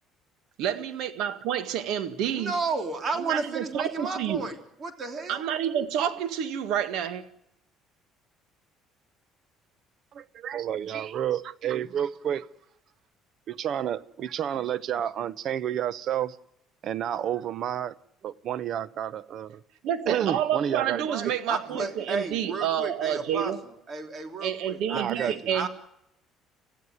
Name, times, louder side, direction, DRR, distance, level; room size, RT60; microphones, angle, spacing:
voice 1, 0.6-2.5 3.2-4.4 5.3-7.2 19.8-23.6 24.4-25.7, right 9 dB, 75° right, 1.9 m, -29 dB
voice 2, 2.3-4.5 4.8-5.4 21.0-23.5 23.9-25.7, right 4 dB, 40° right, 3.4 m, -32 dB
voice 3, 10.1-12.5 13.5-16.4 16.8-17.9 18.2-19.6 20.1-21.1 24.9-25.5, right 10 dB, 60° right, 0.9 m, -30 dB
26.0 x 15.5 x 9.5 m
supercardioid pair, 95°, 0 cm